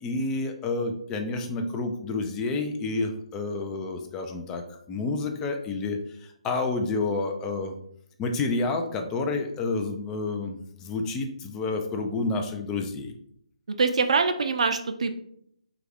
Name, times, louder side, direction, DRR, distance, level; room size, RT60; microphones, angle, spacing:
voice 1, 0.0-7.7 8.2-13.1, left 3 dB, 15° left, 4 dB, 0.4 m, -29 dB
voice 2, 13.7-15.1, right 4 dB, 60° right, 7 dB, 0.4 m, -24 dB
3.4 x 2.4 x 3.3 m, 0.70 s
figure-of-eight pair, 150°, 4 cm